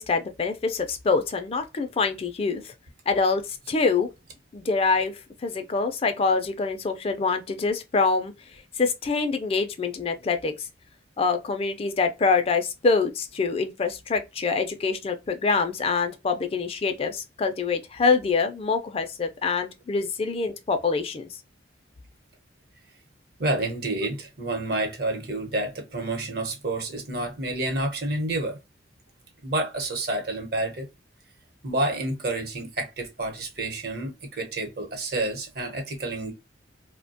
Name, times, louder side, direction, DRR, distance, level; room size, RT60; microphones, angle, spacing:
voice 1, 0.0-2.7 3.1-3.4 3.7-4.1 4.5-5.2 5.4-8.3 8.8-10.7 11.2-21.3, left 4 dB, 35° left, 0.4 m, -25 dB
voice 2, 23.4-28.6 29.4-30.9 31.6-36.3, right 2 dB, 60° right, 0.9 m, -29 dB
2.7 x 2.1 x 2.6 m
head